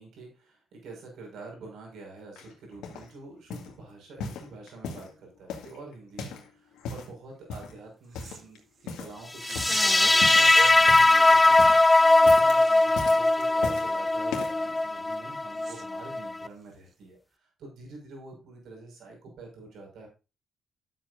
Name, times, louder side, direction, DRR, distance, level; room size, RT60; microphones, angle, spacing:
voice 1, 0.0-20.1, right 3 dB, 75° right, 1 dB, 5.6 m, -47 dB
sound 1, 2.4-3.1 3.5-3.8 4.2-5.1 5.5-6.5 6.7-7.1 7.5-7.8 8.1-8.6 8.9-9.2 9.5-9.8 10.2-11.2 11.5-11.9 12.2-12.6 13.0-13.9 14.3-14.7 15.3-15.4, left 4 dB, 90° left, 2.2 m, -38 dB
sound 2, 8.2-8.4 9.4-10.8 12.7-12.8 13.3-13.4 15.6-15.8, right 6 dB, 50° right, 0.8 m, -35 dB
sound 3, 9.4-16.5, left 2 dB, 15° left, 0.5 m, -20 dB
12.0 x 8.0 x 2.6 m, 0.29 s
cardioid pair, 90°, 0 cm